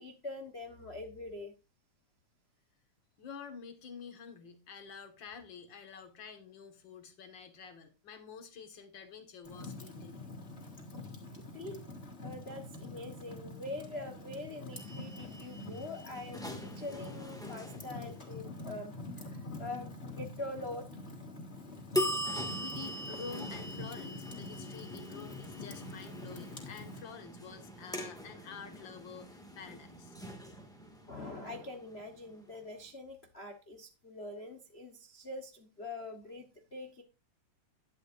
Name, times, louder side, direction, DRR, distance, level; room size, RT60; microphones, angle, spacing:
voice 1, 0.0-1.5 9.7-9.9 11.5-11.8 12.2-21.1 31.1-37.0, left 2 dB, 70° left, 5 dB, 0.6 m, -44 dB
voice 2, 3.2-10.3 22.1-22.2 22.6-30.2, left 6 dB, 45° left, 7 dB, 2.1 m, -49 dB
Fire, 9.4-27.0, left 2 dB, 20° left, 2.6 m, -46 dB
sound 1, 14.8-18.5 21.9-32.6, equal, ahead, 1.4 m, -41 dB
11.5 x 11.0 x 2.6 m, 0.30 s
omnidirectional pair, 3.4 m